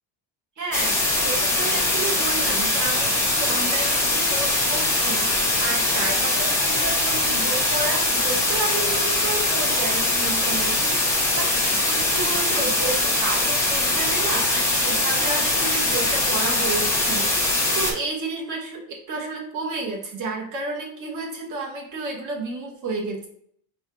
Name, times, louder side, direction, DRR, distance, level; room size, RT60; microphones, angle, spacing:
voice 1, 0.6-1.0 1.2-23.3, right 3 dB, 40° right, -1 dB, 1.0 m, -31 dB
sound 1, 0.7-17.9, left 2 dB, 5° left, 0.8 m, -22 dB
4.4 x 2.2 x 4.6 m, 0.64 s
cardioid pair, 170°, 48 cm